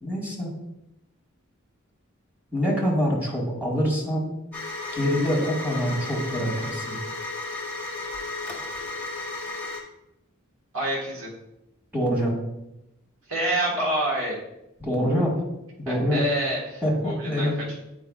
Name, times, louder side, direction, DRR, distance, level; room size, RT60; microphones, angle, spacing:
voice 1, 0.0-0.5 2.5-4.3 4.9-7.0 11.9-12.4 14.8-15.4 15.8-16.2 16.8-17.6, equal, 10° right, -3 dB, 1.7 m, -25 dB
sound 1, 4.5-9.8, left 3 dB, 10° left, 1.0 m, -34 dB
voice 2, 10.7-11.3 13.3-14.4 15.9-17.8, right 1 dB, 75° right, -4 dB, 1.7 m, -27 dB
8.8 x 4.7 x 2.4 m, 0.88 s
head